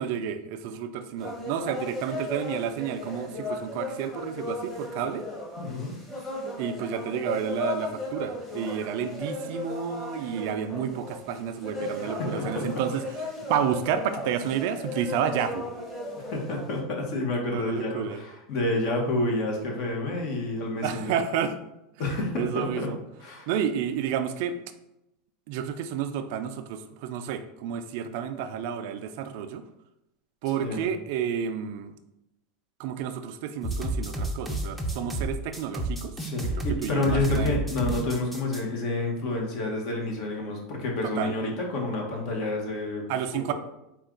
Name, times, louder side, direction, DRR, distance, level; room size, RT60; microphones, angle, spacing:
voice 1, 0.0-5.2 6.6-15.7 17.5-18.2 20.8-21.6 22.4-23.0 23.5-24.6 25.5-29.6 30.4-31.9 32.8-36.1 36.8-37.5 41.0-41.3 43.1-43.5, right 8 dB, 65° right, 9 dB, 0.4 m, -30 dB
sound 1, 1.2-16.8, left 2 dB, 20° left, 1.3 m, -36 dB
voice 2, 5.6-5.9 12.2-12.7 16.2-21.1 22.0-22.9 23.2-23.5 30.6-30.9 36.2-43.1 43.3-43.5, left 2 dB, 55° left, 0 dB, 1.2 m, -29 dB
sound 2, 33.6-38.6, right 1 dB, ahead, 0.6 m, -30 dB
4.4 x 2.4 x 3.8 m, 0.88 s
supercardioid pair, 125°, 0 cm